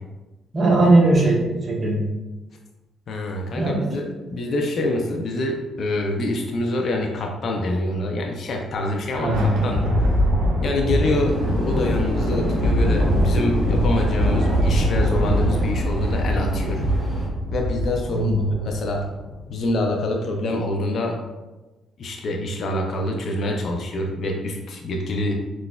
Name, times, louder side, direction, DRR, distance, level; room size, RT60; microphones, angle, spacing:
voice 1, 0.5-1.4 1.7-2.1 3.6-3.8 9.2-9.5 18.1-18.4, right 2 dB, 35° right, -3 dB, 0.9 m, -18 dB
voice 2, 3.1-9.3 9.6-10.1 10.6-16.8 17.5-18.3 18.6-19.0 19.5-21.2 22.0-25.3, left 1 dB, 60° left, 1 dB, 0.4 m, -26 dB
Thunder, 8.7-19.5, equal, 80° right, 0.6 m, -22 dB
sound 1, 11.0-17.3, equal, 5° left, 1.5 m, -31 dB
3.9 x 2.4 x 2.2 m, 1.1 s
cardioid pair, 90°, 0 cm